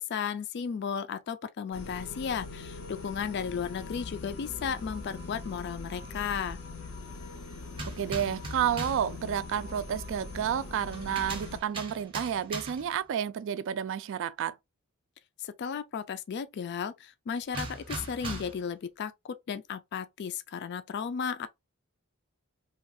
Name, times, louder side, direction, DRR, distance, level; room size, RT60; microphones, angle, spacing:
voice 1, 0.0-6.6 15.4-21.5, left 7 dB, 50° left, 0.3 m, -34 dB
sound 1, 1.7-11.6, left 3 dB, 80° left, 0.7 m, -42 dB
sound 2, 7.7-9.1 10.9-13.0 17.5-18.7, right 2 dB, 25° right, 0.7 m, -39 dB
voice 2, 8.0-14.6, right 9 dB, 60° right, 0.3 m, -30 dB
3.0 x 2.3 x 2.6 m
head